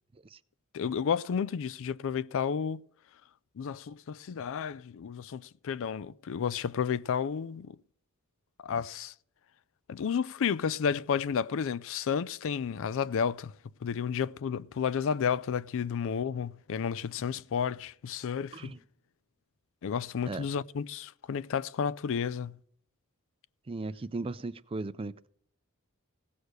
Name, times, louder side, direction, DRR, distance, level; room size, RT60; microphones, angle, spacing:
voice 1, 0.7-2.8 3.6-7.8 8.6-9.1 9.9-13.5 13.8-18.7 19.8-22.6, left 7 dB, 65° left, 0.4 m, -32 dB
voice 2, 23.7-25.3, right 3 dB, 25° right, 0.4 m, -37 dB
16.5 x 6.5 x 6.6 m
head